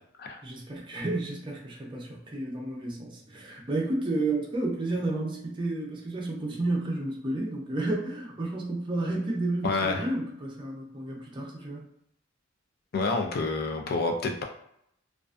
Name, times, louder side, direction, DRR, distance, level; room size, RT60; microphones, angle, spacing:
voice 1, 0.4-11.9, right 2 dB, 25° right, -1 dB, 0.5 m, -31 dB
voice 2, 9.6-10.1 12.9-14.4, left 3 dB, 50° left, 3 dB, 0.4 m, -28 dB
2.4 x 2.2 x 2.4 m, 0.74 s
head